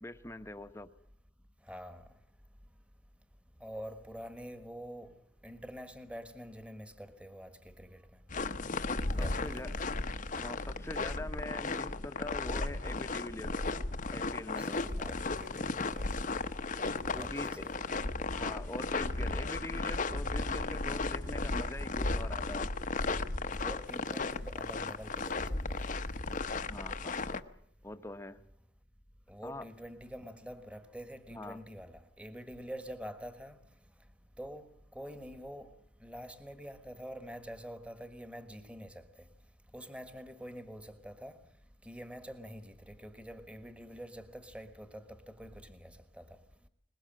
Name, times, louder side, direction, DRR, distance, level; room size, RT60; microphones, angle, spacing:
voice 1, 0.0-0.9 9.2-9.7 10.4-13.6 14.1-14.8 17.1-17.7 18.3-22.7 26.7-27.2 27.8-28.4 29.4-29.6 31.3-31.6, left 1 dB, 15° left, 0.9 m, -43 dB
voice 2, 1.7-2.0 3.6-5.1 5.4-8.0 9.1-9.8 14.6-16.2 17.2-17.8 23.5-25.8 29.3-33.6 34.4-35.7 36.0-39.1 39.7-41.4 41.8-46.3, equal, 5° right, 1.4 m, -46 dB
sound 1, 8.3-27.4, left 3 dB, 40° left, 0.8 m, -35 dB
22.0 x 20.5 x 7.6 m
head